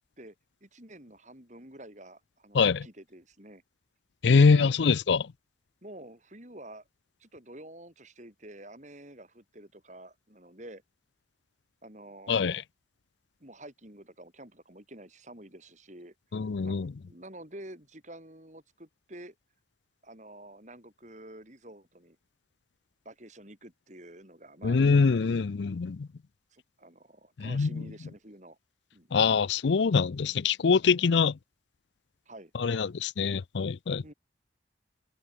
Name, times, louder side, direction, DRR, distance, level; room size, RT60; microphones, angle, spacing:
voice 1, 0.6-3.6 4.3-4.7 5.8-6.8 7.2-10.8 11.8-12.6 13.4-16.1 16.6-16.8 17.1-19.3 20.0-22.2 23.0-24.8 26.5-28.6 28.9-29.2 32.3-32.5 34.0-34.1, right 1 dB, 40° right, 6.3 m, -48 dB
voice 2, 4.2-5.3 12.3-12.6 16.3-16.9 24.6-26.1 27.4-27.7 29.1-31.3 32.6-34.0, left 5 dB, 75° left, 0.5 m, -24 dB
head